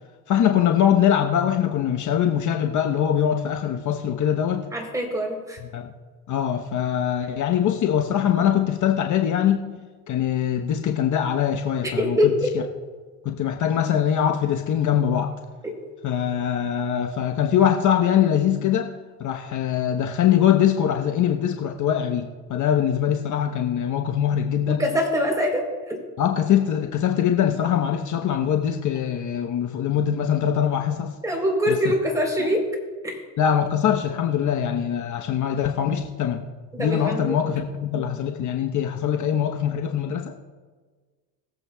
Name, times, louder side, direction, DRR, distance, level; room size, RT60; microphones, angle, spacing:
voice 1, 0.3-4.7 5.6-5.9 6.3-9.8 10.1-12.4 13.2-15.3 16.0-18.9 19.2-24.8 26.2-31.2 31.7-31.9 32.4-32.5 33.4-36.5 36.8-40.4, left 9 dB, 50° left, 4 dB, 1.0 m, -22 dB
voice 2, 4.7-5.6 11.8-12.5 15.6-15.7 24.8-26.0 31.2-32.6 33.0-33.2 36.7-37.5, equal, 10° right, 0 dB, 3.5 m, -24 dB
21.0 x 7.8 x 2.3 m, 1.4 s
supercardioid pair, 85°, 39 cm